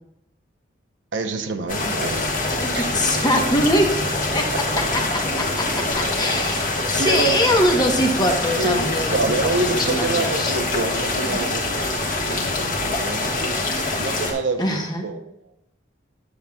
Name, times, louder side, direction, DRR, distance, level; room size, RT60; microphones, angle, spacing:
voice 1, 1.1-2.2 2.7-3.5 5.0-5.1 6.9-7.4 7.9-13.2 14.0-15.2, right 2 dB, 85° right, 5 dB, 0.8 m, -28 dB
sound 1, 1.7-14.3, left 2 dB, 45° left, 1.5 m, -24 dB
voice 2, 2.6-4.0 4.3-4.5 4.7-4.8 5.3-9.2 9.7-10.5 14.6-15.0, equal, 20° left, 2 dB, 1.0 m, -22 dB
9.6 x 7.0 x 2.3 m, 0.80 s
head